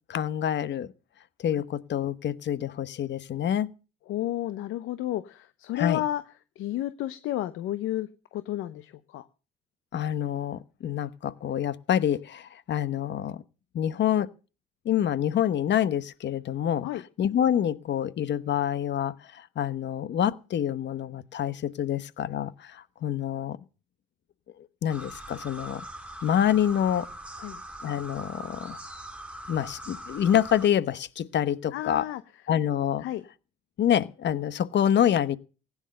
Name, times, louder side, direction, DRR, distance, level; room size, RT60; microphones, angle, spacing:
voice 1, 0.1-0.9 1.4-3.7 5.7-6.0 9.9-13.4 13.7-14.3 14.8-16.9 17.2-23.6 24.8-25.8 26.2-27.1 27.8-28.8 29.5-32.1 32.5-33.0 33.8-35.4, left 10 dB, 65° left, 1.1 m, -27 dB
voice 2, 4.1-6.2 6.6-8.1 8.3-9.3 16.8-17.0 27.4-27.6 31.7-32.2 33.0-33.2, left 13 dB, 90° left, 0.8 m, -31 dB
sound 1, 24.9-30.7, right 1 dB, 5° right, 2.7 m, -42 dB
16.0 x 10.0 x 6.6 m
cardioid pair, 90°, 20 cm